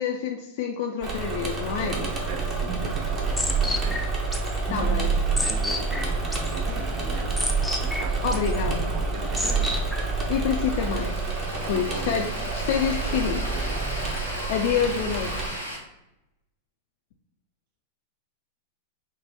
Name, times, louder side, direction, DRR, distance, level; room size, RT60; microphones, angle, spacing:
voice 1, 0.0-1.9 4.7-5.1 8.2-8.9 10.3-11.1 11.7-13.4 14.5-15.3, left 7 dB, 55° left, 2 dB, 0.4 m, -27 dB
Engine / Mechanisms, 1.0-15.5, right 3 dB, 30° right, 1.0 m, -29 dB
voice 2, 1.8-9.8 10.7-11.1 11.4-12.2 13.1-14.2, right 5 dB, 45° right, 6 dB, 0.6 m, -40 dB
sound 1, 2.3-10.3, right 4 dB, ahead, 0.5 m, -29 dB
sound 2, 10.6-15.8, equal, 90° right, 0.9 m, -36 dB
5.6 x 2.2 x 2.8 m, 0.90 s
figure-of-eight pair, 95°, 0 cm